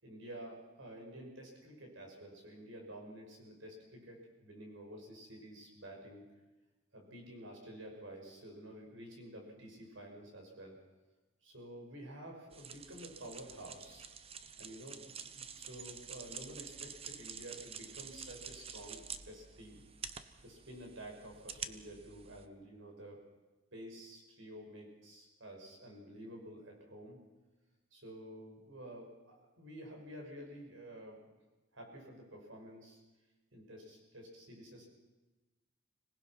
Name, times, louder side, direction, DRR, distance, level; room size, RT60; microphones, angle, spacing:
voice 1, 0.0-6.2 6.9-10.8 11.4-14.1 14.6-19.8 20.4-23.2 23.7-27.2 27.9-31.2 31.7-33.0 33.5-34.9, right 1 dB, 65° right, 1 dB, 5.9 m, -50 dB
sound 1, 12.5-22.5, right 7 dB, 30° right, 0.8 m, -48 dB
25.5 x 19.0 x 5.9 m, 1.1 s
head